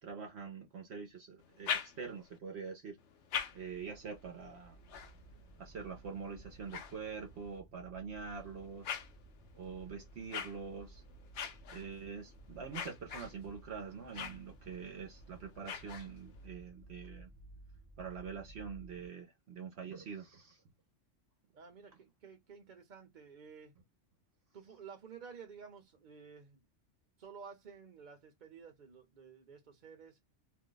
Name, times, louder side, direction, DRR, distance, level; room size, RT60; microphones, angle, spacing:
voice 1, 0.0-3.0 3.5-4.8 5.6-9.0 9.5-11.0 11.7-17.3 18.0-20.6, right 6 dB, 65° right, 1.0 m, -45 dB
sound 1, 1.4-2.4 3.0-7.6 8.2-16.5, left 7 dB, 75° left, 0.9 m, -45 dB
sound 2, 3.1-19.1, right 2 dB, 20° right, 0.7 m, -57 dB
voice 2, 21.5-23.7 24.5-26.6 27.2-30.2, right 6 dB, 40° right, 1.0 m, -52 dB
2.7 x 2.2 x 3.9 m
omnidirectional pair, 1.3 m